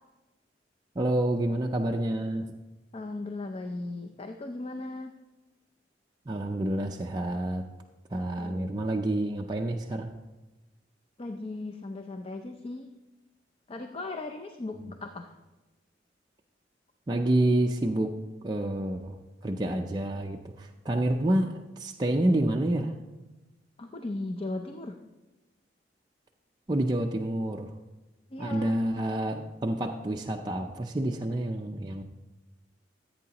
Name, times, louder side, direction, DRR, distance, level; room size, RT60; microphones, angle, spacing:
voice 1, 1.0-2.6 6.3-7.7 8.1-10.2 17.1-19.2 19.4-23.0 26.7-27.7 28.4-32.0, right 1 dB, 25° right, 1 dB, 0.4 m, -28 dB
voice 2, 2.9-5.1 8.4-8.9 11.2-12.9 13.7-15.3 23.8-25.0 28.3-28.7, left 2 dB, 35° left, 5 dB, 0.5 m, -37 dB
14.5 x 8.3 x 2.9 m, 1.1 s
head